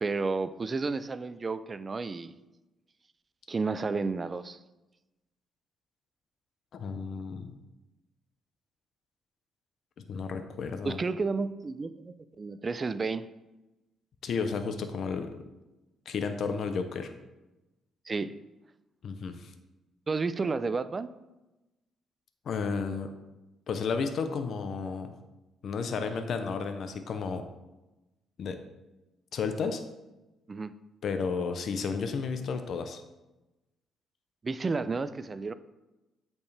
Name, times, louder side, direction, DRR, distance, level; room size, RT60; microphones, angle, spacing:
voice 1, 0.0-2.4 3.5-4.6 10.8-13.3 18.1-18.3 20.1-21.1 30.5-30.7 34.4-35.5, right 4 dB, 30° right, 13 dB, 0.4 m, -31 dB
voice 2, 6.7-7.5 10.1-11.0 14.2-15.3 16.1-17.1 19.0-19.5 22.5-23.1 23.7-25.1 25.6-27.4 28.4-28.6 29.3-29.8 31.0-33.0, left 5 dB, 60° left, 7 dB, 0.6 m, -32 dB
8.4 x 4.5 x 3.3 m, 1.0 s
cardioid pair, 90°, 0 cm